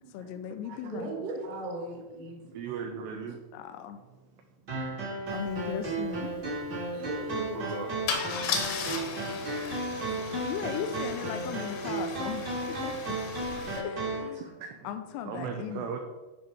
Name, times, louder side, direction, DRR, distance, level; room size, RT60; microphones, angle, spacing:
voice 1, 0.1-1.3 3.5-4.0 5.3-6.3 10.3-13.2 13.8-14.4 14.8-16.0, left 9 dB, 85° left, 8 dB, 3.3 m, -37 dB
voice 2, 0.8-2.4 3.2-3.3 6.9-7.8 9.9-10.2 12.5-12.6, right 2 dB, 60° right, -1 dB, 3.2 m, -38 dB
voice 3, 2.5-3.4 6.2-6.5 7.6-7.9 10.0-10.1 13.6-13.7 14.4-14.8 15.3-16.0, right 6 dB, 85° right, 4 dB, 2.4 m, -37 dB
sound 1, 4.7-14.3, right 2 dB, 40° right, 1.4 m, -34 dB
Car / Engine starting / Idling, 5.5-5.6 5.8-6.1 8.1-13.8, left 5 dB, 70° left, 2.8 m, -36 dB
11.5 x 4.5 x 5.2 m, 1.2 s
omnidirectional pair, 5.8 m